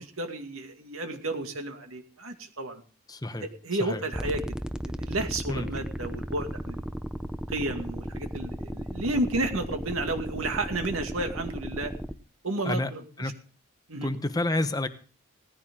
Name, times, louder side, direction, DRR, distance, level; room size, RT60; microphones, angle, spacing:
voice 1, 0.0-2.8 3.4-4.4 4.9-6.8 7.5-11.9 12.4-13.0 13.9-14.1, right 2 dB, 80° right, 5 dB, 2.3 m, -32 dB
voice 2, 3.1-3.5 3.8-4.0 5.5-5.7 12.6-12.9 13.2-13.3 14.0-14.9, left 1 dB, 20° left, 10 dB, 0.9 m, -29 dB
sound 1, 4.1-12.1, equal, 5° right, 0.6 m, -35 dB
18.0 x 15.0 x 3.8 m, 0.39 s
head